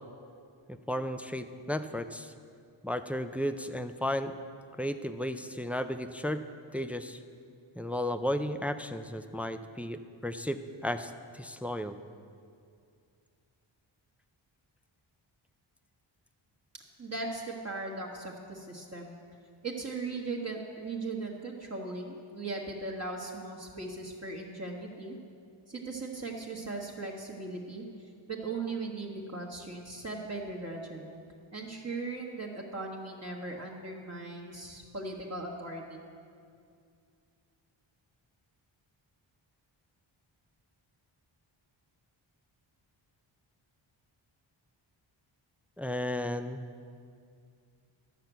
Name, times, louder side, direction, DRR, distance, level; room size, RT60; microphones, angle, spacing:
voice 1, 0.7-2.3 2.8-4.3 4.8-6.4 6.7-7.2 7.8-12.0 45.8-46.6, left 1 dB, 5° right, 9 dB, 0.3 m, -34 dB
voice 2, 17.0-19.1 19.6-25.2 25.7-31.1 31.5-36.0, right 3 dB, 30° right, -2 dB, 1.3 m, -38 dB
12.5 x 5.9 x 8.0 m, 2.3 s
wide cardioid pair, 95°, 48 cm